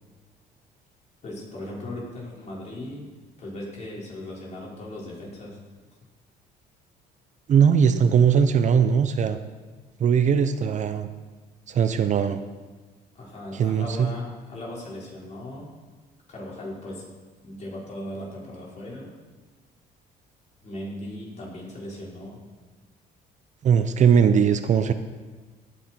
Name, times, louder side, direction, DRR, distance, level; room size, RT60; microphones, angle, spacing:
voice 1, 1.2-3.0 3.4-5.6 13.1-15.7 16.3-17.0 17.4-19.1 20.6-22.4, left 1 dB, 45° left, -4 dB, 4.8 m, -37 dB
voice 2, 7.5-9.4 10.0-11.1 11.7-12.4 13.5-14.1 23.6-24.9, right 7 dB, 45° right, 10 dB, 0.7 m, -20 dB
16.0 x 10.0 x 4.5 m, 1.4 s
cardioid pair, 110°, 17 cm